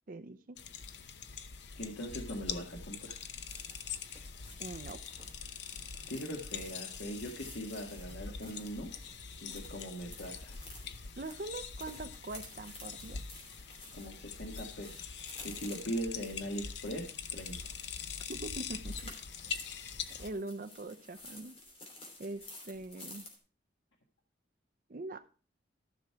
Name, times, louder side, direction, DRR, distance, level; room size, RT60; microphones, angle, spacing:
voice 1, 0.1-0.6 4.6-5.0 11.2-13.2 18.3-19.1 20.1-21.6 22.2-23.3 24.9-25.2, right 2 dB, 50° right, 11 dB, 0.6 m, -42 dB
sound 1, 0.6-20.3, left 6 dB, 65° left, 0.7 m, -44 dB
voice 2, 1.8-3.2 6.1-8.9 9.4-10.7 13.9-17.6, equal, 85° left, 0 dB, 1.6 m, -41 dB
sound 2, 3.5-23.4, left 2 dB, 35° left, 3.0 m, -53 dB
13.5 x 6.2 x 4.5 m, 0.37 s
head